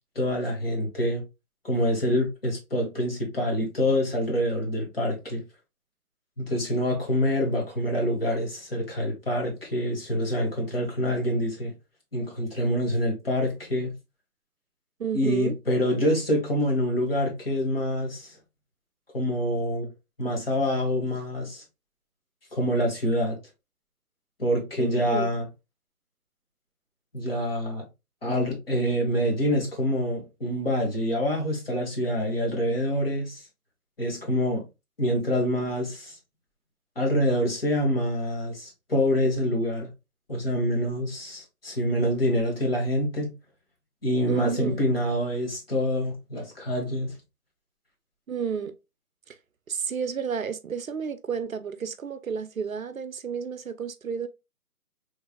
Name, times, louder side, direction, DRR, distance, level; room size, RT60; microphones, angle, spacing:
voice 1, 0.1-1.2 1.6-5.4 6.4-11.7 12.1-13.9 15.1-18.4 19.1-19.9 20.2-21.6 22.5-23.4 24.4-25.5 27.1-27.8 28.2-33.4 34.0-34.6 35.0-36.2 36.9-39.9 40.3-43.3 44.0-47.1, equal, 40° left, 1.5 m, -26 dB
voice 2, 15.0-15.5 24.8-25.3 44.3-44.8 48.3-48.7 49.7-54.3, right 6 dB, 60° right, 0.6 m, -31 dB
4.3 x 3.3 x 2.3 m
hypercardioid pair, 175°, 46 cm